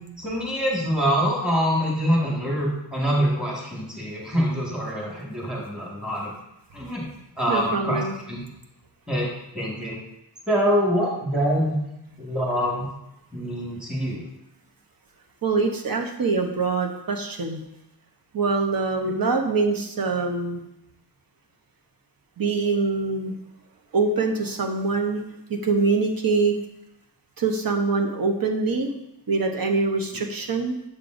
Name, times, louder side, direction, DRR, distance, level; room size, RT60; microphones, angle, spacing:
voice 1, 0.0-6.3 6.7-7.0 7.4-8.4 9.1-10.0 10.5-11.8 12.2-12.9 13.3-14.2 19.0-19.1, equal, ahead, -4 dB, 1.8 m, -25 dB
voice 2, 7.5-8.1 15.4-17.6 18.3-20.6 22.4-23.3 23.9-25.2 25.5-26.6 27.4-28.9 29.3-30.8, right 4 dB, 55° right, 3 dB, 1.0 m, -24 dB
7.3 x 6.6 x 2.6 m, 0.86 s
wide cardioid pair, 85°, 42 cm